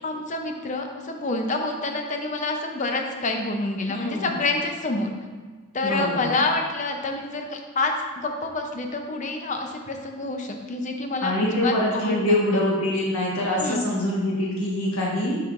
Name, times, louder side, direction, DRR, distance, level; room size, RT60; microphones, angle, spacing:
voice 1, 0.0-5.1 5.7-12.6 13.6-14.0, left 2 dB, 35° left, 3 dB, 0.6 m, -27 dB
voice 2, 3.9-4.3 5.8-6.3 11.2-15.4, left 1 dB, 85° left, -4 dB, 1.2 m, -25 dB
7.1 x 5.6 x 2.5 m, 1.4 s
head